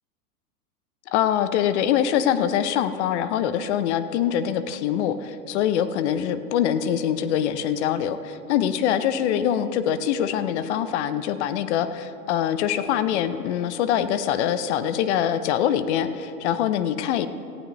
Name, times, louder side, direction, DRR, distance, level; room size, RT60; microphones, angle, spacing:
voice 1, 1.1-17.3, left 9 dB, 45° left, 12 dB, 0.8 m, -24 dB
18.0 x 15.0 x 3.1 m, 2.6 s
hypercardioid pair, 105°, 47 cm